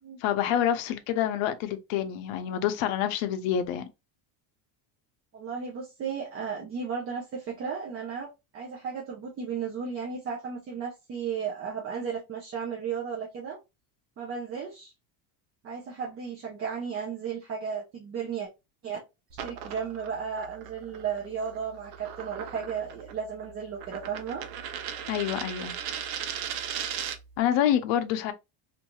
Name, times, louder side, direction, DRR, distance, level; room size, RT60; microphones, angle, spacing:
voice 1, 0.2-3.8 25.1-25.7 27.4-28.3, left 10 dB, 70° left, 0.6 m, -27 dB
voice 2, 5.3-13.6 14.2-14.9 15.6-18.5 18.8-19.0 19.4-24.4, right 6 dB, 30° right, 0.5 m, -34 dB
sound 1, 19.3-27.4, right 9 dB, 80° right, 0.7 m, -38 dB
2.6 x 2.3 x 2.8 m
cardioid pair, 170°, 48 cm